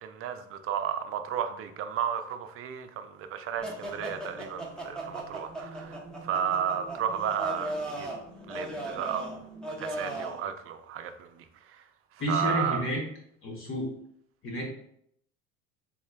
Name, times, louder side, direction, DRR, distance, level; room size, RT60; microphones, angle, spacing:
voice 1, 0.0-8.1 8.5-9.4 9.8-11.8 12.3-12.8, right 8 dB, 40° right, 0.4 m, -33 dB
sound 1, 3.6-10.4, right 1 dB, ahead, 0.7 m, -38 dB
voice 2, 12.2-13.0 13.4-13.9 14.4-14.6, equal, 35° left, 1.0 m, -30 dB
3.6 x 3.1 x 2.3 m
supercardioid pair, 95°, 35 cm